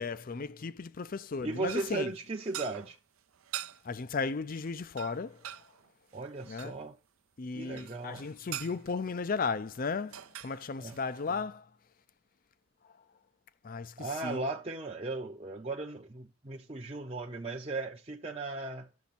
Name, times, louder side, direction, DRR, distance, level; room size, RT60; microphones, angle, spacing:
voice 1, 0.0-2.1 3.8-5.4 6.5-6.7 7.4-11.6 13.6-13.9 14.2-14.4, left 4 dB, 40° left, 0.4 m, -35 dB
voice 2, 1.4-3.0 6.1-6.9 7.5-8.3 10.8-11.0 14.0-18.9, right 3 dB, 25° right, 0.7 m, -37 dB
sound 1, 1.7-3.0 3.3-3.8 4.2-4.4 4.7-4.8 5.0-6.8 7.8-9.1 9.8-9.9 10.1-11.4, right 11 dB, 75° right, 0.6 m, -44 dB
11.5 x 7.0 x 4.2 m
head